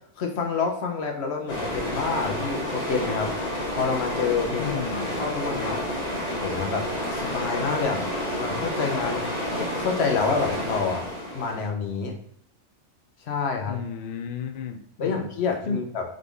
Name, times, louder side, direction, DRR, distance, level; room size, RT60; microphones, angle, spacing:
voice 1, 0.2-3.3 3.7-5.8 6.4-6.8 7.1-8.0 8.4-9.2 9.5-11.1 11.3-12.1 13.2-13.8 15.0-16.0, left 5 dB, 55° left, 2 dB, 1.0 m, -28 dB
sound 1, 1.5-11.7, equal, 30° left, 1.3 m, -30 dB
voice 2, 4.5-5.2 13.6-15.3 15.6-15.8, left 6 dB, 75° left, 7 dB, 0.4 m, -33 dB
3.7 x 3.7 x 3.4 m, 0.72 s
omnidirectional pair, 1.4 m